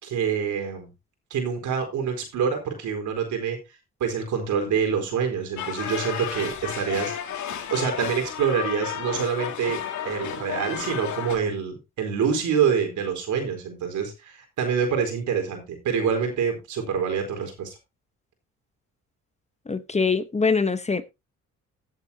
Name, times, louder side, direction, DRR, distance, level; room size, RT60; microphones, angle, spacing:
voice 1, 0.0-0.9 1.3-3.6 4.0-7.1 7.7-9.8 10.0-17.8, right 7 dB, 75° right, 4.4 m, -26 dB
sound 1, 5.6-11.4, left 9 dB, 70° left, 2.7 m, -32 dB
voice 2, 19.7-21.0, left 4 dB, 20° left, 1.0 m, -23 dB
16.0 x 8.1 x 2.8 m
cardioid pair, 90°, 30 cm